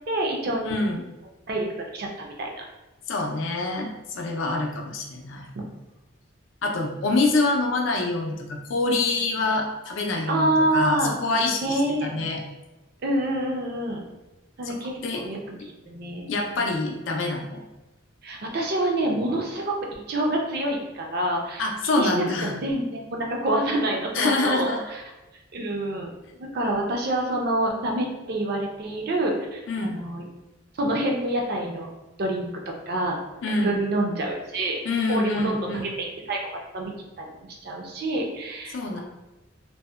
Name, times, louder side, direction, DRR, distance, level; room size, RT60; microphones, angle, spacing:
voice 1, 0.1-0.8 1.5-2.6 10.3-11.2 11.6-12.1 13.0-14.0 14.6-15.6 15.9-16.2 16.5-16.6 18.2-25.0 25.5-26.1 26.4-30.2 30.8-31.9 32.2-33.2 33.6-34.8 35.1-35.7 36.0-36.9 37.2-37.4 37.6-39.0, right 1 dB, 50° right, 1 dB, 0.4 m, -27 dB
voice 2, 0.6-1.0 3.1-5.5 6.6-12.4 14.7-14.8 15.0-15.2 16.3-17.6 21.6-22.6 24.1-24.8 29.7-30.0 33.4-33.8 34.8-35.9 38.7-39.0, left 2 dB, 65° left, 0 dB, 0.4 m, -26 dB
2.6 x 2.0 x 2.3 m, 1.1 s
head